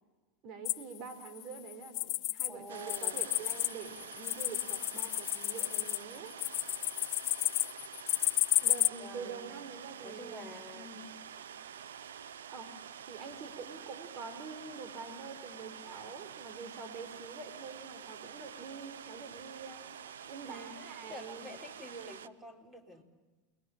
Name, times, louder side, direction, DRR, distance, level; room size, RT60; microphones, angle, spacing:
voice 1, 0.4-6.3 8.6-11.1 12.5-12.8 13.1-19.9 20.3-21.5, right 5 dB, 50° right, 9 dB, 4.1 m, -46 dB
sound 1, 0.7-2.5 2.8-8.9, left 20 dB, 55° left, 0.8 m, -32 dB
voice 2, 2.5-3.2 9.0-9.5 10.0-10.9 20.4-23.0, equal, 15° right, 4 dB, 4.2 m, -48 dB
sound 2, 2.7-22.3, right 8 dB, 85° right, 0.8 m, -48 dB
28.5 x 21.0 x 8.5 m, 1.3 s
hypercardioid pair, 105°, 0 cm